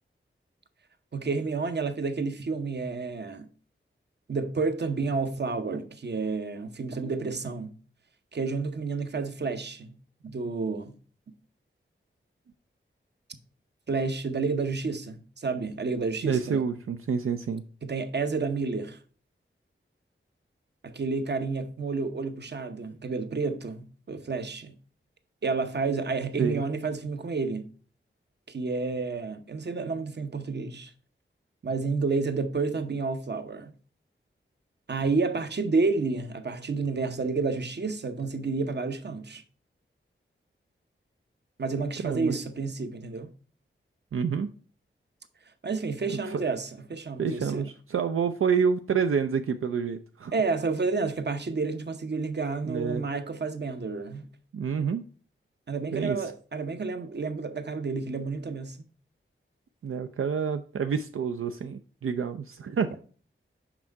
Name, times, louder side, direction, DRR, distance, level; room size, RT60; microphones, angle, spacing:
voice 1, 1.1-3.5 4.3-7.7 8.3-9.9 10.2-10.9 11.3-11.4 13.9-16.6 17.8-19.0 20.8-24.7 25.4-27.7 28.5-30.9 31.6-33.7 34.9-39.4 41.6-43.3 45.6-47.7 50.3-54.3 55.7-58.8, right 4 dB, 55° right, 0.8 m, -30 dB
voice 2, 16.2-17.6 26.4-26.6 42.0-42.4 44.1-44.5 46.1-46.4 47.2-50.3 52.6-53.0 54.5-55.0 55.9-56.3 59.8-63.0, right 6 dB, 80° right, 0.5 m, -28 dB
6.0 x 5.3 x 4.5 m
wide cardioid pair, 75°, 21 cm